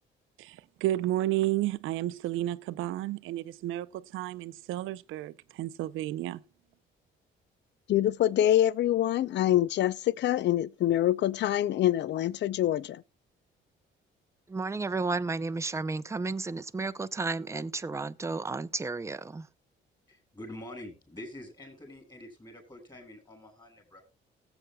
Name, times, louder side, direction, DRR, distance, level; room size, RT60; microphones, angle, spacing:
voice 1, 0.4-6.4, right 14 dB, 90° right, 0.5 m, -32 dB
voice 2, 7.9-13.0, left 12 dB, 60° left, 0.5 m, -25 dB
voice 3, 14.5-19.5, right 3 dB, 15° right, 0.5 m, -32 dB
voice 4, 20.1-24.0, left 1 dB, 20° left, 5.2 m, -46 dB
19.5 x 8.0 x 2.2 m
cardioid pair, 90°, 20 cm